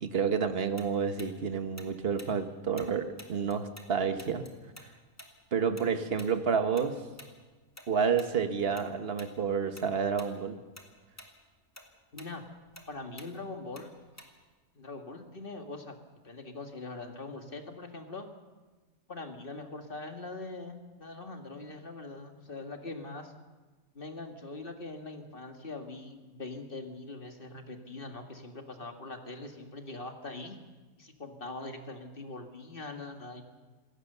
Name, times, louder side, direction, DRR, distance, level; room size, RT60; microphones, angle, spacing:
voice 1, 0.0-4.4 5.5-7.0 7.9-10.6, right 6 dB, 45° right, 8 dB, 1.5 m, -29 dB
Tick-tock, 0.8-3.9 4.2-8.9 9.2-9.4 9.8-10.3 10.6-14.6, left 1 dB, 10° left, 2.1 m, -51 dB
voice 2, 12.1-12.4 12.9-13.9 14.8-16.0 16.2-18.3 19.1-23.3 24.0-30.6 31.0-33.4, left 2 dB, 40° left, 5 dB, 2.0 m, -42 dB
27.5 x 16.5 x 6.8 m, 1.3 s
omnidirectional pair, 1.5 m